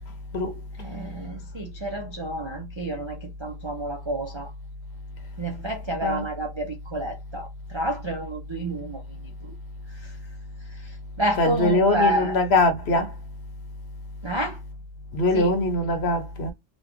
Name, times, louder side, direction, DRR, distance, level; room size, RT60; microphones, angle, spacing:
voice 1, 0.8-4.5 5.4-9.0 9.4-9.5 10.0-10.1 10.8-12.4 14.2-14.6 15.3-15.5, right 1 dB, 40° right, 0.4 m, -29 dB
voice 2, 11.3-13.1 15.1-16.5, left 2 dB, 55° left, 1.0 m, -22 dB
3.0 x 2.4 x 3.4 m
omnidirectional pair, 1.4 m